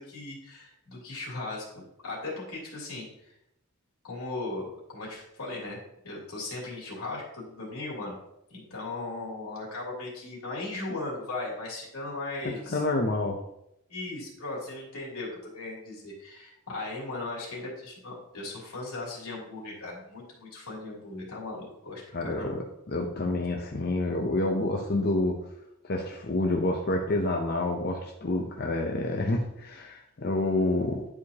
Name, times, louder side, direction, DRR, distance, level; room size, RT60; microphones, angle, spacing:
voice 1, 0.0-3.3 4.0-4.6 4.9-8.2 8.5-12.8 13.9-22.5, left 2 dB, 90° left, -4 dB, 3.0 m, -37 dB
voice 2, 12.4-13.4 22.1-22.6 22.9-25.4 25.8-31.1, left 2 dB, 45° left, 1 dB, 0.6 m, -28 dB
11.0 x 4.8 x 2.8 m, 0.81 s
head